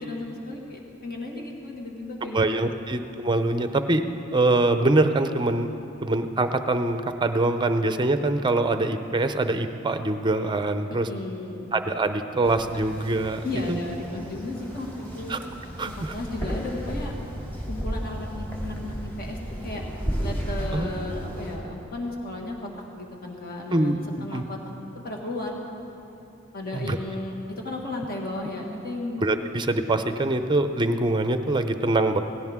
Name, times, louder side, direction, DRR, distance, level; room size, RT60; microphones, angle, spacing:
voice 1, 0.0-2.8 10.9-11.7 13.4-14.9 15.1-15.4 15.9-17.1 17.7-19.4 19.6-19.8 20.2-22.6 23.0-24.6 24.9-25.6 26.5-27.4 27.6-29.2, left 2 dB, 45° left, -1 dB, 1.9 m, -34 dB
voice 2, 2.3-4.0 4.3-5.7 6.0-11.1 11.7-13.4 13.7-13.8 15.3-15.4 15.8-16.1 20.7-20.9 23.7-24.4 26.7-27.0 29.2-32.2, right 2 dB, 20° right, 8 dB, 0.6 m, -24 dB
sound 1, 12.4-21.6, equal, 10° left, 2.3 m, -33 dB
17.5 x 16.5 x 3.6 m, 2.8 s
head